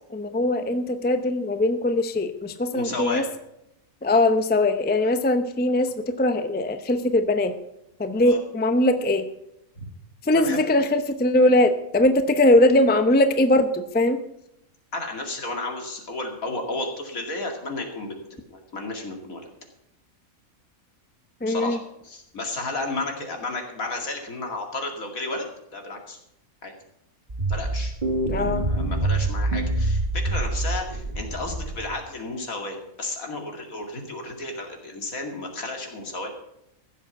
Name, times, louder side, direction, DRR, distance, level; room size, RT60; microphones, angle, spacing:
voice 1, 0.1-3.2 4.0-7.5 8.0-9.3 10.2-14.2 21.4-21.8 28.3-28.6, left 1 dB, 10° left, 9 dB, 0.6 m, -21 dB
voice 2, 2.7-3.2 8.2-8.4 9.8-9.9 10.3-10.6 14.9-18.2 18.5-19.4 21.5-25.5 25.7-26.2 26.6-26.7 27.5-27.9 28.4-36.3, left 2 dB, 70° left, 3 dB, 2.8 m, -32 dB
sound 1, 27.3-32.0, right 2 dB, 30° right, 2.0 m, -26 dB
15.5 x 7.4 x 7.0 m, 0.82 s
omnidirectional pair, 1.5 m